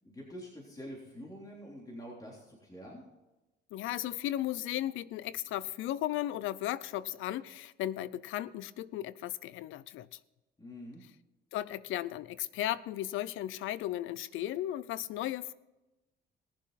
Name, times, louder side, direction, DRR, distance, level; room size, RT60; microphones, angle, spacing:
voice 1, 0.0-3.1 10.6-11.0, equal, 20° left, 3.5 m, -46 dB
voice 2, 3.7-10.2 11.5-15.5, left 13 dB, 90° left, 0.5 m, -35 dB
19.5 x 7.4 x 4.1 m
cardioid pair, 90°, 20 cm